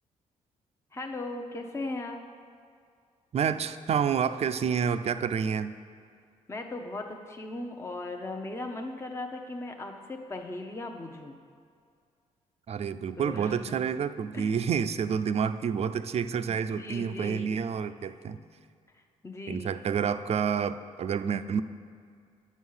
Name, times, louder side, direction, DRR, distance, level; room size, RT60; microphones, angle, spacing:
voice 1, 0.9-2.2 6.5-11.4 13.2-13.8 14.3-14.6 16.4-17.5 18.9-19.7, left 2 dB, 20° left, 3 dB, 0.7 m, -38 dB
voice 2, 3.3-5.7 12.7-18.4 19.5-21.6, right 7 dB, 50° right, 11 dB, 0.4 m, -29 dB
9.2 x 6.2 x 5.6 m, 2.2 s
cardioid pair, 70°, 13 cm